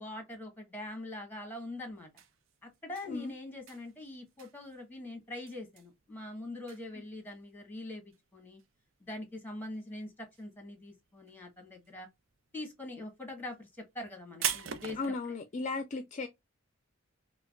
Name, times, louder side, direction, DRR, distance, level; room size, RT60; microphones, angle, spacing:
voice 1, 0.0-2.1 2.6-8.6 9.0-12.1 12.5-13.7 13.9-15.1, left 1 dB, 10° left, 1.3 m, -43 dB
sound 1, 2.0-9.9 10.2-10.9 11.2-15.1, right 9 dB, 70° right, 0.6 m, -41 dB
voice 2, 15.0-16.3, left 3 dB, 35° left, 0.4 m, -35 dB
4.5 x 2.1 x 2.3 m
head